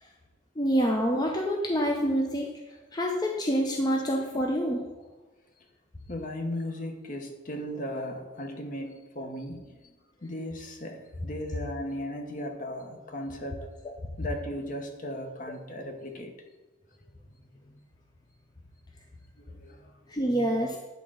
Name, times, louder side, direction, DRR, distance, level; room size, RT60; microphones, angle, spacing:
voice 1, 0.6-2.5 2.9-4.9 20.1-20.8, equal, 20° left, 0.7 m, -26 dB
voice 2, 6.1-9.8 10.2-13.6 14.2-16.3 19.5-19.8, left 1 dB, 45° left, 1.1 m, -36 dB
9.8 x 3.8 x 6.3 m
head